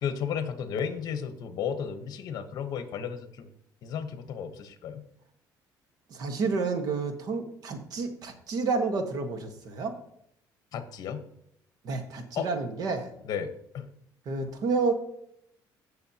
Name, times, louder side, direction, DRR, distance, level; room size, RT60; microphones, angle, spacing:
voice 1, 0.0-3.5 3.8-5.0 10.7-11.2 12.3-12.5 13.2-13.9, left 7 dB, 55° left, 9 dB, 1.1 m, -33 dB
voice 2, 6.1-9.9 11.8-13.1 14.2-14.9, right 4 dB, 55° right, 6 dB, 1.4 m, -30 dB
16.5 x 6.4 x 2.9 m, 0.75 s
cardioid pair, 145°, 8 cm